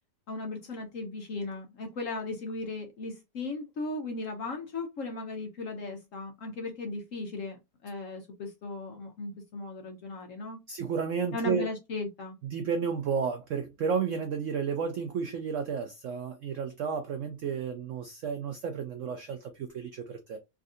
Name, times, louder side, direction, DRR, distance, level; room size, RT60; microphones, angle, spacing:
voice 1, 0.3-10.6 11.3-12.4, left 2 dB, 65° left, 0.8 m, -37 dB
voice 2, 10.7-11.7 12.4-20.4, right 6 dB, 85° right, 0.6 m, -32 dB
3.6 x 2.5 x 2.4 m
omnidirectional pair, 1.9 m